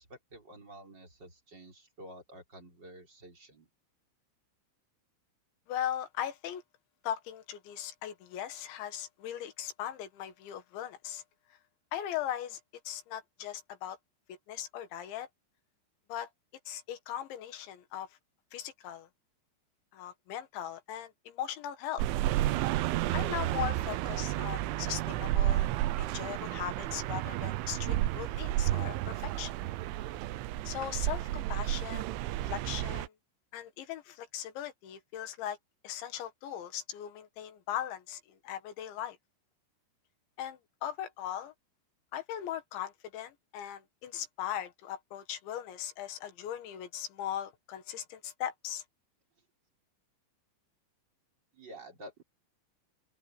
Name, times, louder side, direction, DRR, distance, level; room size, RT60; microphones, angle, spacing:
voice 1, 0.0-3.7 51.5-52.2, right 1 dB, 20° right, 4.9 m, -50 dB
voice 2, 5.7-6.6 7.0-11.2 11.9-12.6 12.9-14.0 14.3-15.3 16.1-16.3 16.7-18.1 18.5-19.1 19.9-22.0 23.1-25.7 26.0-29.5 30.7-32.1 32.4-33.1 33.5-35.6 35.8-39.2 40.4-41.5 42.1-48.8, left 11 dB, 70° left, 3.9 m, -39 dB
sound 1, 22.0-33.1, right 14 dB, 80° right, 3.3 m, -31 dB
open air
omnidirectional pair, 5.6 m